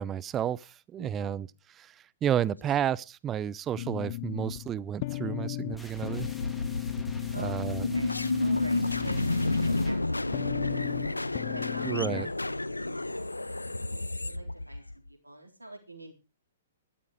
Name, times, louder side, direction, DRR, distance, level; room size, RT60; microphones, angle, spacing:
voice 1, 0.0-1.5 1.8-1.9 2.2-6.3 7.4-7.9 11.8-12.3, right 10 dB, 20° right, 0.6 m, -31 dB
voice 2, 1.0-1.5 7.3-10.0 10.3-11.1 11.5-16.1, right 1 dB, 85° right, 3.9 m, -47 dB
sound 1, 3.7-12.2, left 18 dB, 40° left, 0.6 m, -36 dB
sound 2, 5.7-11.4, left 1 dB, 5° left, 2.6 m, -50 dB
sound 3, 6.0-15.1, left 2 dB, 85° left, 0.7 m, -31 dB
13.0 x 12.5 x 5.0 m
figure-of-eight pair, 115°, 0 cm